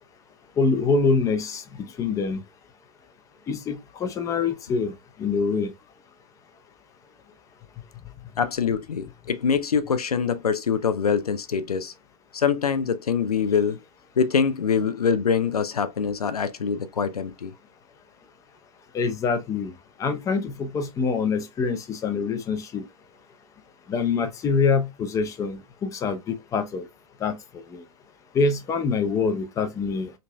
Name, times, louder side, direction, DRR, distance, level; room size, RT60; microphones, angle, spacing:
voice 1, 0.6-2.4 3.5-4.9 5.2-5.7 18.9-19.7 20.0-22.8 23.9-26.9 27.2-27.4 27.7-27.8 28.3-30.1, left 4 dB, 15° left, 0.5 m, -25 dB
voice 2, 8.4-11.9 12.3-13.8 14.2-17.5, left 6 dB, 80° left, 0.5 m, -24 dB
5.2 x 2.6 x 2.2 m
figure-of-eight pair, 105°, 19 cm